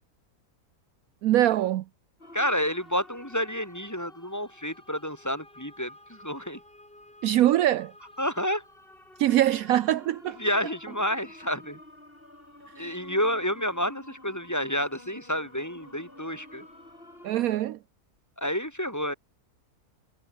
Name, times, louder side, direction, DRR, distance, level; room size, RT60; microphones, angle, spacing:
voice 1, 1.2-1.8 7.2-7.9 9.2-10.4 12.8-12.9 17.2-17.8, right 13 dB, 70° right, 1.0 m, -23 dB
sound 1, 2.2-17.4, left 1 dB, 35° left, 6.6 m, -51 dB
voice 2, 2.3-6.6 8.2-8.6 10.4-11.8 12.8-16.6 18.4-19.1, equal, 10° left, 5.4 m, -29 dB
omnidirectional pair, 1.6 m